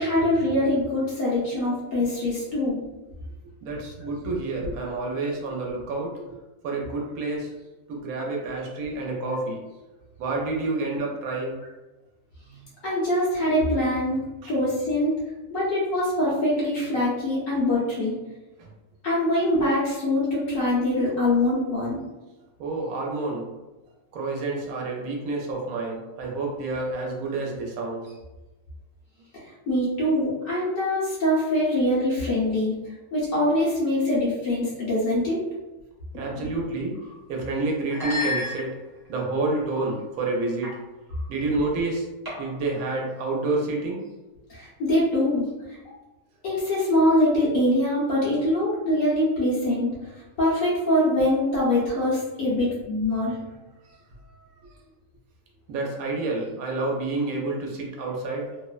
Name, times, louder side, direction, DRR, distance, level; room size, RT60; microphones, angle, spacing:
voice 1, 0.0-2.8 12.8-15.1 15.5-18.1 19.0-22.0 29.7-32.7 33.1-35.4 36.1-36.5 44.5-45.4 46.4-49.9 50.4-53.3, left 1 dB, 70° left, -7 dB, 1.1 m, -23 dB
voice 2, 3.6-6.4 6.6-7.5 7.9-9.6 10.2-11.6 14.4-14.5 18.6-18.7 19.5-19.6 22.6-23.5 24.1-28.2 36.1-37.0 37.3-38.7 39.1-40.7 41.3-42.1 42.4-44.0 53.8-54.0 54.3-54.7 55.7-58.5, right 2 dB, 80° right, -1 dB, 1.0 m, -29 dB
sound 1, 36.9-37.2 37.9-39.1 39.7-40.0 40.6-40.8 41.1-41.3 42.2-42.7, left 2 dB, 25° right, 0.5 m, -32 dB
2.9 x 2.0 x 2.3 m, 1.1 s
omnidirectional pair, 1.5 m